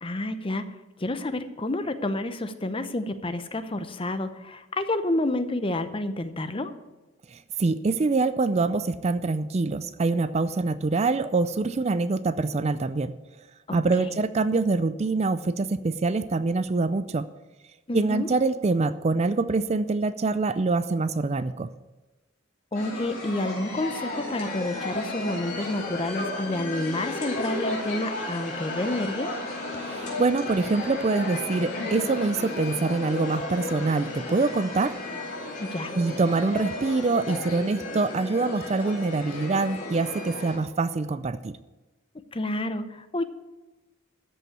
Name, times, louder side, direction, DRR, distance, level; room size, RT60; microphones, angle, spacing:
voice 1, 0.0-6.7 13.7-14.2 17.9-18.3 22.7-29.4 35.6-35.9 42.3-43.2, left 1 dB, 25° left, 10 dB, 0.7 m, -29 dB
voice 2, 7.3-13.1 13.7-17.3 17.9-21.7 29.8-35.0 36.0-41.6, right 3 dB, 30° right, 13 dB, 0.4 m, -25 dB
sound 1, 22.7-40.6, left 2 dB, 40° left, 3.9 m, -34 dB
13.5 x 5.5 x 8.6 m, 1.1 s
head